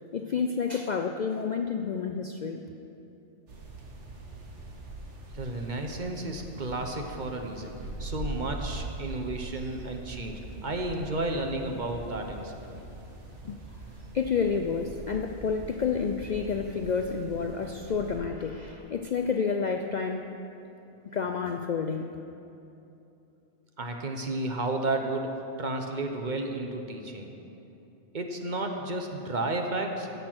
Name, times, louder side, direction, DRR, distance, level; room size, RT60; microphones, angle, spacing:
voice 1, 0.1-2.6 13.4-13.6 14.1-20.3 21.1-22.1, left 5 dB, 55° left, 5 dB, 0.5 m, -29 dB
sound 1, 3.5-18.2, right 2 dB, 75° right, 1.6 m, -42 dB
voice 2, 5.3-7.7 8.0-12.8 23.8-27.3 28.1-30.1, right 2 dB, 45° right, 3 dB, 1.0 m, -32 dB
16.0 x 6.7 x 6.1 m, 2.9 s
omnidirectional pair, 1.2 m